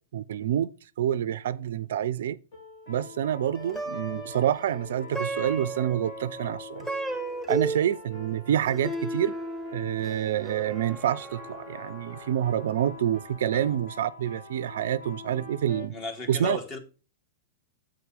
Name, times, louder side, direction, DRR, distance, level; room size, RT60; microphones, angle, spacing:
voice 1, 0.1-0.7 1.0-2.4 2.9-6.9 7.5-9.3 9.7-15.9 16.3-16.6, right 10 dB, 65° right, 0.3 m, -27 dB
sound 1, 2.5-15.9, left 4 dB, 60° left, 3.3 m, -46 dB
Plucked string instrument, 3.5-13.0, right 2 dB, 10° left, 1.6 m, -36 dB
voice 2, 15.9-16.8, left 4 dB, 35° left, 1.8 m, -35 dB
7.7 x 4.6 x 4.9 m
figure-of-eight pair, 105°, 0 cm